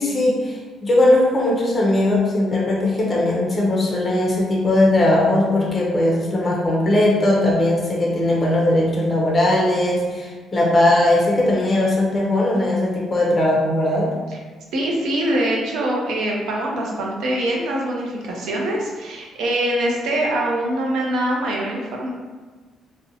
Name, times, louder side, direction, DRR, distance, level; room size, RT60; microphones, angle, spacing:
voice 1, 0.0-14.1, left 1 dB, 25° left, -3 dB, 0.5 m, -19 dB
voice 2, 14.7-22.1, right 1 dB, 75° right, -1 dB, 0.5 m, -23 dB
2.6 x 2.0 x 2.6 m, 1.3 s
cardioid pair, 140°, 0 cm